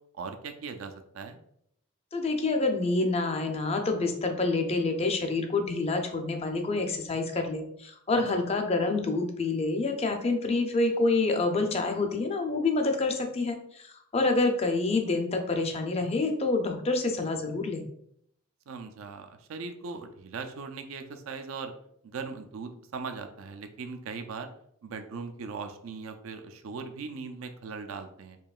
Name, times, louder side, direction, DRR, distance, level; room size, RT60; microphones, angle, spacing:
voice 1, 0.1-1.4 18.7-21.7 22.0-24.5 24.8-28.4, right 4 dB, 80° right, 6 dB, 0.4 m, -39 dB
voice 2, 2.1-17.8, left 3 dB, 30° left, 4 dB, 0.5 m, -27 dB
4.5 x 3.0 x 2.3 m, 0.71 s
head